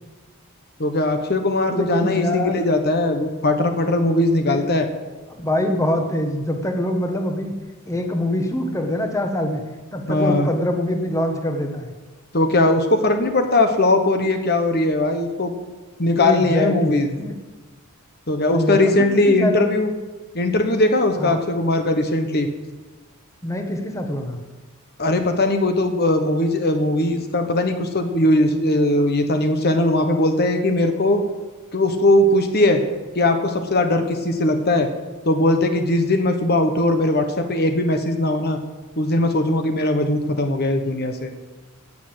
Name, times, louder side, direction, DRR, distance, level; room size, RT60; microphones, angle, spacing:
voice 1, 0.8-4.9 10.1-10.5 12.3-15.5 16.0-17.1 18.3-19.9 20.3-22.5 25.0-31.2 31.7-32.8 33.1-34.9 35.2-38.6 39.0-41.3, left 1 dB, 45° left, 6 dB, 1.2 m, -19 dB
voice 2, 1.7-2.6 4.4-4.6 5.3-7.5 7.9-9.6 9.9-11.9 16.1-17.4 18.5-19.6 21.2-21.5 23.4-24.4, left 1 dB, 15° left, 4 dB, 1.3 m, -24 dB
17.0 x 6.7 x 8.0 m, 1.2 s
head